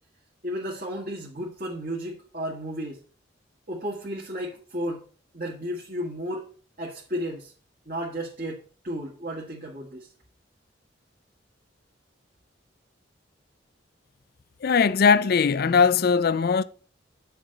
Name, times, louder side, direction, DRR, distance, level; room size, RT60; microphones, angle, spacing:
voice 1, 0.4-3.0 3.7-5.0 5.3-6.5 6.8-7.5 7.9-10.1, equal, 50° right, 1.9 m, -33 dB
voice 2, 14.6-16.6, left 5 dB, 55° left, 0.4 m, -20 dB
9.3 x 6.8 x 3.9 m
head